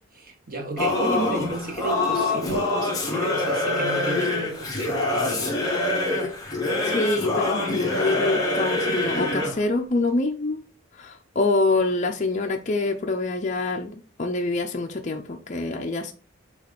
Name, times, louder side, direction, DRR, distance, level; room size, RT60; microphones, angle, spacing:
voice 1, 0.1-5.9, right 2 dB, 45° right, 1.5 m, -33 dB
Singing / Musical instrument, 0.8-9.6, left 2 dB, 20° left, 1.8 m, -25 dB
voice 2, 6.8-10.6 11.0-16.1, left 2 dB, 35° left, 0.6 m, -26 dB
6.3 x 3.2 x 5.1 m
head